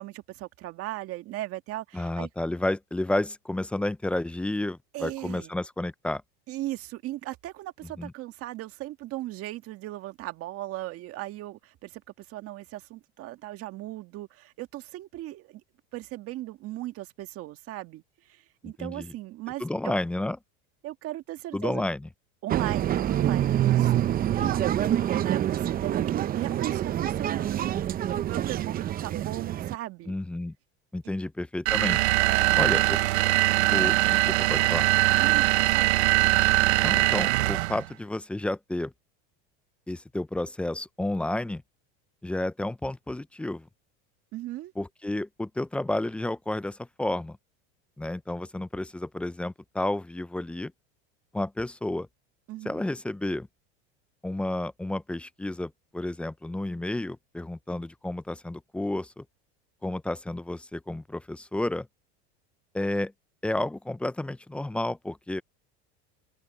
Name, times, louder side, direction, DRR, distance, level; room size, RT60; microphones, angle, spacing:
voice 1, 0.0-2.3 4.9-5.5 6.5-15.6 15.9-19.9 20.8-21.8 22.4-30.2 32.2-32.6 35.2-36.0 44.3-44.7 52.5-52.9, right 16 dB, 45° right, 1.8 m, -37 dB
voice 2, 1.9-6.2 8.0-8.1 18.8-19.1 19.6-20.4 21.5-22.1 24.4-24.5 30.1-30.5 30.9-32.0 32.5-33.0 33.7-34.9 36.8-38.9 39.9-41.6 42.2-43.7 44.8-47.4 48.0-50.7 51.3-52.1 52.6-53.5 54.2-59.2 59.8-61.9 62.7-63.1 63.4-65.4, left 1 dB, 5° left, 0.3 m, -31 dB
sound 1, 22.5-29.7, right 11 dB, 30° right, 0.8 m, -26 dB
sound 2, 31.7-37.8, right 21 dB, 90° right, 0.7 m, -22 dB
supercardioid pair, 135°, 32 cm